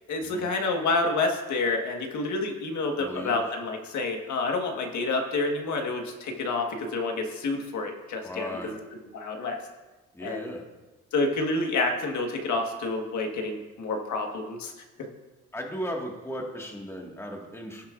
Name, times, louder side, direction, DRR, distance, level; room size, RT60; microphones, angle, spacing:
voice 1, 0.1-8.8 9.1-9.6 10.2-10.5 11.1-14.7, left 3 dB, 70° left, 2 dB, 1.6 m, -28 dB
voice 2, 3.0-3.6 8.2-8.8 10.1-10.6 15.5-17.9, equal, 10° left, 0 dB, 1.8 m, -36 dB
17.5 x 7.3 x 2.5 m, 1.1 s
cardioid pair, 90°, 30 cm